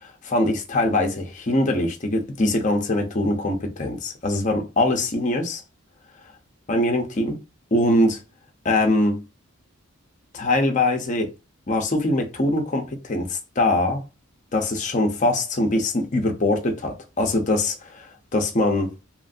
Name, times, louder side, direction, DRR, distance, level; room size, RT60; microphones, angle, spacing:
voice 1, 0.0-5.6 6.7-7.4 7.7-8.2 8.6-9.2 10.3-11.3 11.7-14.0 14.5-18.1 18.3-18.9, left 1 dB, 35° left, 0.6 m, -22 dB
3.0 x 2.5 x 2.5 m
head